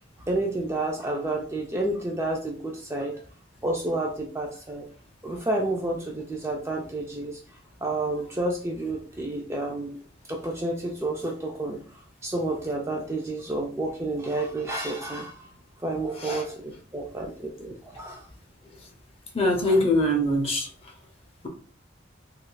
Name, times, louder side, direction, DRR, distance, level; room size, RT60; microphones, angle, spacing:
voice 1, 0.3-3.2 3.6-4.9 5.2-7.4 7.8-9.9 10.3-11.8 12.2-15.5 15.8-18.3 19.7-19.8, right 2 dB, 15° right, 0 dB, 0.3 m, -30 dB
voice 2, 19.3-20.7, left 1 dB, 30° left, 2 dB, 0.6 m, -23 dB
3.5 x 2.3 x 2.3 m, 0.43 s
head